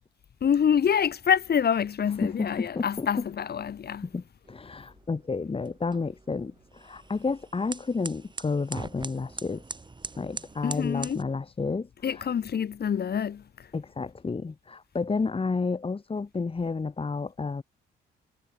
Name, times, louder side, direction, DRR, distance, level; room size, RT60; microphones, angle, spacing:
voice 1, 0.4-4.1 10.6-11.2 12.0-13.7, left 8 dB, 55° left, 4.6 m, -26 dB
voice 2, 2.2-3.3 4.0-9.6 10.2-11.9 12.2-12.3 13.7-17.6, left 4 dB, 30° left, 3.9 m, -31 dB
sound 1, 4.4-11.2, right 3 dB, 25° right, 6.0 m, -42 dB
cardioid pair, 90°, 20 cm